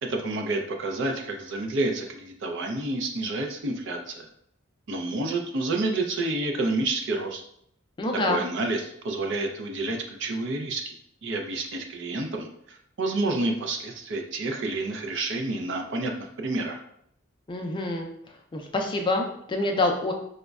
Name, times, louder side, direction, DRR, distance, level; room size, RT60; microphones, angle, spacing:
voice 1, 0.0-4.3 4.9-7.4 8.3-11.0 11.2-16.1 16.4-16.8, right 2 dB, 60° right, 3 dB, 0.5 m, -29 dB
voice 2, 8.0-8.4 17.5-18.1 18.5-20.1, left 2 dB, 25° left, 3 dB, 0.4 m, -26 dB
5.0 x 2.1 x 2.3 m, 0.71 s
head